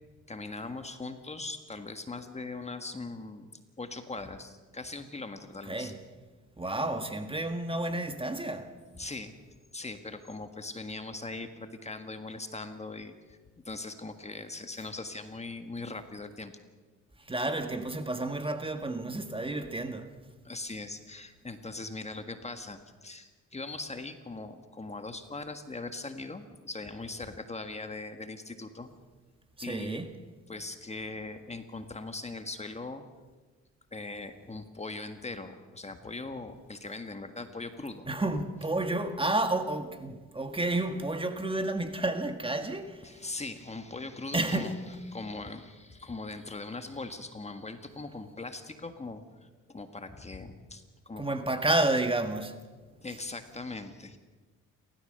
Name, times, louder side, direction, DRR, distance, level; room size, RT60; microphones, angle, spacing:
voice 1, 0.3-3.5 3.8-5.9 8.9-9.3 9.7-13.4 13.6-16.5 20.4-28.9 29.6-30.0 30.5-33.0 33.9-38.1 43.0-51.5 53.0-54.2, left 3 dB, 20° left, 1.6 m, -40 dB
voice 2, 6.6-8.7 17.3-20.1 29.7-30.1 38.1-43.0 44.3-44.7 51.2-52.5, right 2 dB, 20° right, 1.8 m, -30 dB
29.5 x 13.5 x 6.7 m
cardioid pair, 90°, 30 cm